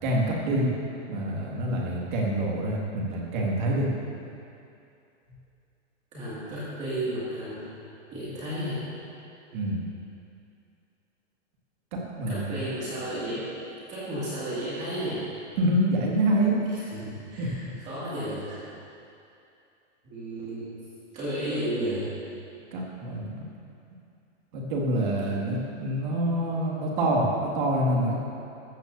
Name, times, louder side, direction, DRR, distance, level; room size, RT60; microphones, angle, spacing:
voice 1, 0.0-0.7 1.1-3.9 9.5-9.8 11.9-12.6 15.6-16.6 17.4-17.5 22.7-23.4 24.5-28.2, right 1 dB, 40° right, -3 dB, 2.2 m, -26 dB
voice 2, 6.1-7.7 8.1-8.8 12.3-13.5 13.9-15.3 16.3-18.6 20.0-20.8 21.1-22.0, right 1 dB, 20° right, -10 dB, 2.3 m, -33 dB
14.0 x 14.0 x 2.7 m, 2.6 s
hypercardioid pair, 175°, 37 cm